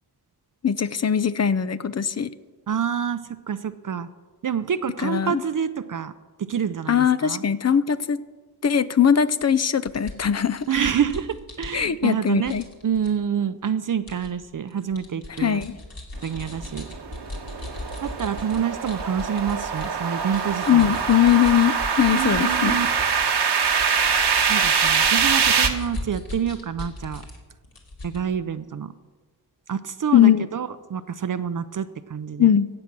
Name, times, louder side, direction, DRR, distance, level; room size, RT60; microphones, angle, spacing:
voice 1, 0.6-2.3 5.0-5.4 6.9-8.2 8.6-10.7 11.7-12.6 15.4-15.8 20.7-22.7 30.1-30.5 32.4-32.7, left 9 dB, 40° left, 15 dB, 0.6 m, -20 dB
voice 2, 2.7-3.2 3.5-4.1 4.4-6.1 6.4-7.4 10.7-12.6 12.8-15.6 16.2-16.9 18.0-21.0 22.1-22.9 24.5-27.2 28.0-28.9 29.7-32.5, right 8 dB, 50° right, 11 dB, 0.6 m, -27 dB
sound 1, 9.4-9.5 9.9-12.1 12.4-13.1 14.1-14.3 14.7-19.9 20.2-27.4 27.6-28.2, left 2 dB, 60° left, 2.7 m, -37 dB
sound 2, 16.6-25.7, right 6 dB, 75° right, 1.2 m, -23 dB
15.5 x 7.8 x 6.0 m, 1.3 s
cardioid pair, 65°, 40 cm